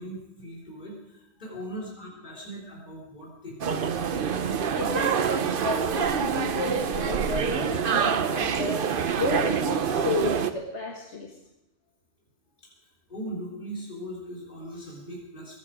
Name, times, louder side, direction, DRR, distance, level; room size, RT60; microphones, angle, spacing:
voice 1, 0.0-3.9 12.8-15.6, equal, 40° left, -4 dB, 4.0 m, -39 dB
sound 1, 3.6-10.5, right 7 dB, 50° right, 0.8 m, -26 dB
voice 2, 4.8-11.3, left 2 dB, 65° left, 0 dB, 1.8 m, -32 dB
22.0 x 9.5 x 5.0 m, 0.92 s
omnidirectional pair, 1.3 m